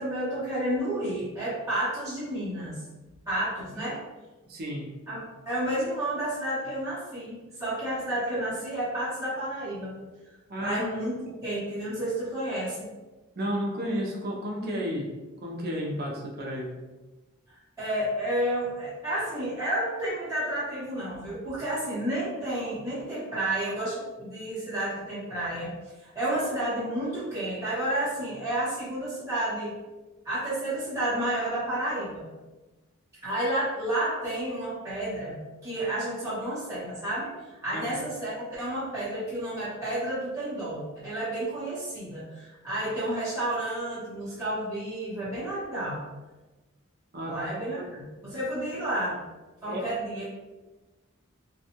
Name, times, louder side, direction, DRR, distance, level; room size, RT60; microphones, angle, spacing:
voice 1, 0.0-2.8 3.3-4.0 5.1-9.9 10.6-12.9 17.5-25.7 26.0-29.7 30.2-32.3 33.2-46.0 47.3-49.2 49.6-50.2, right 1 dB, 15° right, -11 dB, 0.8 m, -31 dB
voice 2, 4.5-4.9 10.5-10.8 13.4-15.1 15.4-16.7 37.7-38.0 47.1-47.6 49.7-49.8, equal, 50° right, -2 dB, 0.5 m, -32 dB
2.6 x 2.2 x 2.8 m, 1.1 s
head